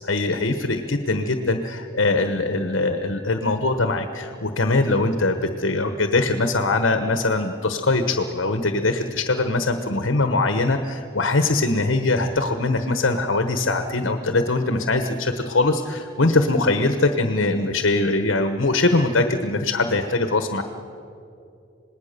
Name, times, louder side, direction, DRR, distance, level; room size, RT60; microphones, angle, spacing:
voice 1, 0.0-20.6, left 2 dB, 80° left, 7 dB, 1.2 m, -22 dB
27.0 x 19.5 x 6.8 m, 2.6 s
head